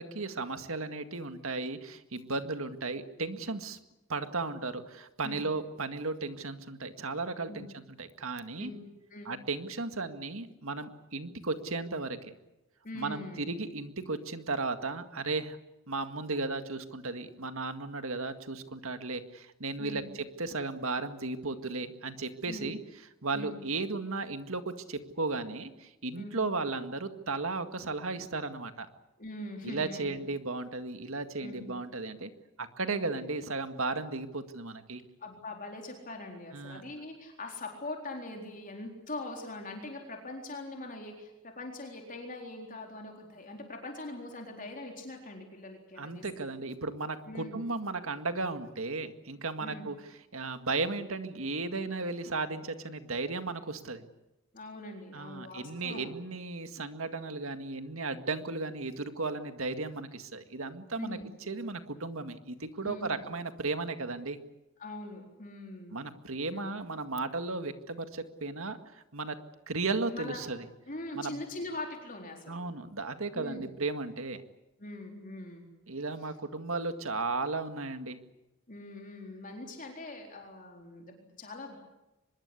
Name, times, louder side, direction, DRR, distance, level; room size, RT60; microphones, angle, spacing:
voice 1, 0.0-3.8 4.1-8.7 9.3-12.4 12.9-15.6 15.9-22.8 23.2-28.9 29.6-32.3 32.6-35.0 36.5-36.8 46.0-50.0 50.3-54.0 55.1-61.2 61.5-64.4 65.9-69.4 69.7-70.7 71.1-71.4 72.5-74.4 75.9-78.2, right 3 dB, 70° right, 8 dB, 2.0 m, -35 dB
voice 2, 12.8-13.5 19.8-20.1 22.5-22.7 23.3-23.6 26.1-26.4 29.2-30.2 31.4-31.7 32.9-33.0 35.2-46.5 47.2-47.7 49.6-49.9 54.5-56.1 61.0-61.2 62.8-63.2 64.8-66.0 66.5-66.7 70.1-70.5 70.9-72.6 73.3-73.7 74.8-75.7 78.7-81.8, left 2 dB, 40° left, 2 dB, 4.1 m, -42 dB
24.5 x 21.5 x 8.4 m, 0.98 s
head